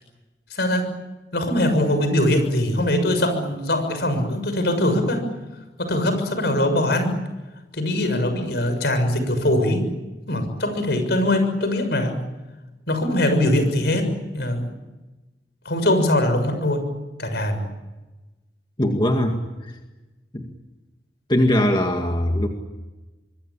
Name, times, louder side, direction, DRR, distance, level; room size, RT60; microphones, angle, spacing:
voice 1, 0.5-0.9 1.3-5.2 5.8-7.2 7.7-9.8 10.3-12.1 12.9-14.6 15.6-16.8 17.2-17.7, left 1 dB, 70° left, 8 dB, 6.7 m, -22 dB
voice 2, 18.8-19.7 20.3-20.4 21.3-22.5, left 1 dB, 25° left, 3 dB, 2.1 m, -21 dB
25.0 x 23.0 x 8.7 m, 1.1 s
head